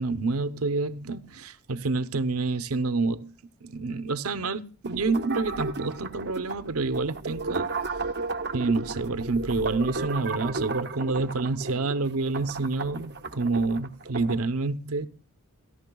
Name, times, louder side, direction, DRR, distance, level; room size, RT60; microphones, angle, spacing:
voice 1, 0.0-3.3 3.6-7.7 8.5-15.1, right 3 dB, 70° right, 0.8 m, -28 dB
sound 1, 4.8-14.4, right 3 dB, 50° right, 1.1 m, -34 dB
29.0 x 11.5 x 2.3 m
head